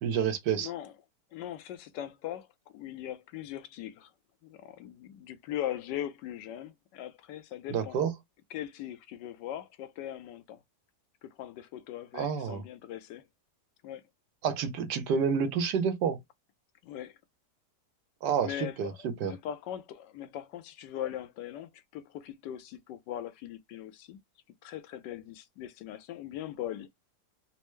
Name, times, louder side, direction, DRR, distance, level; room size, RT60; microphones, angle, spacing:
voice 1, 0.0-0.7 7.7-8.1 12.1-12.6 14.4-16.2 18.2-19.3, right 7 dB, 75° right, 1.4 m, -29 dB
voice 2, 0.6-0.9 1.3-2.5 2.7-4.1 4.4-8.0 8.5-10.6 11.2-13.3 13.8-14.0 16.8-17.2 18.4-24.2 24.6-26.9, left 11 dB, 85° left, 1.2 m, -40 dB
4.3 x 2.0 x 3.1 m
omnidirectional pair, 1.9 m